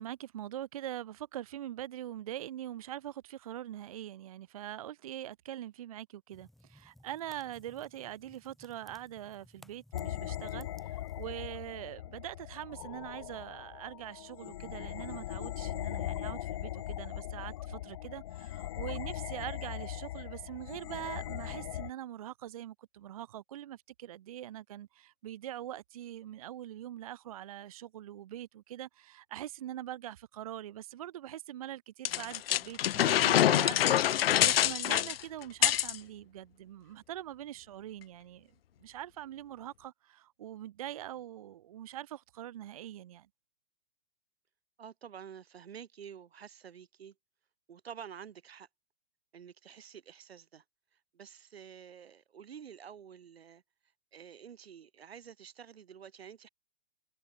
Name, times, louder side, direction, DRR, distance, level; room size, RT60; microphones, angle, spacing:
voice 1, 0.0-38.5 38.8-43.3, right 12 dB, 35° right, 0.7 m, -43 dB
sound 1, 6.3-11.3, equal, ahead, 4.5 m, -60 dB
sound 2, 9.9-21.9, left 13 dB, 30° left, 0.7 m, -40 dB
sound 3, 32.0-36.0, left 12 dB, 75° left, 0.5 m, -25 dB
voice 2, 44.8-47.1 47.7-48.7 49.3-50.6 50.9-53.6 54.1-56.5, right 8 dB, 85° right, 3.1 m, -49 dB
hypercardioid pair, 170°, 30 cm